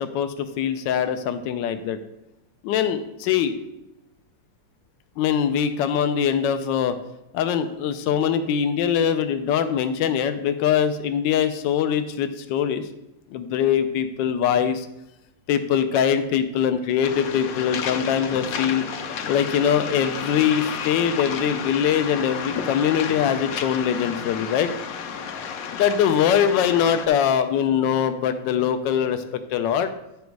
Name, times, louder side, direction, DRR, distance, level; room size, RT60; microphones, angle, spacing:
voice 1, 0.0-2.0 2.6-3.5 5.2-6.9 7.3-12.9 13.3-14.9 15.5-18.8 19.3-24.7 25.7-29.2 29.5-29.9, left 8 dB, 80° left, 9 dB, 1.3 m, -22 dB
Waves surf, 17.0-27.1, left 6 dB, 65° left, 1.0 m, -32 dB
10.0 x 5.2 x 4.6 m, 0.94 s
omnidirectional pair, 2.0 m